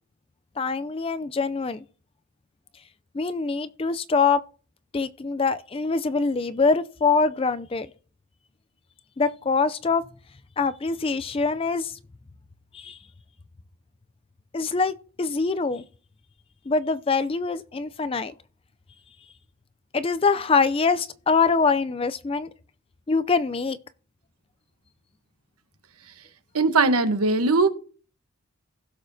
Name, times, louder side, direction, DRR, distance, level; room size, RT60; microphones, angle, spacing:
voice 1, 0.6-1.8 3.1-4.4 4.9-7.9 9.2-10.0 10.6-12.0 12.7-13.0 14.5-15.8 16.7-18.3 19.9-22.5 23.1-23.8, left 4 dB, 25° left, 0.4 m, -24 dB
voice 2, 26.5-27.7, right 3 dB, 90° right, 1.0 m, -20 dB
16.0 x 6.8 x 2.7 m
head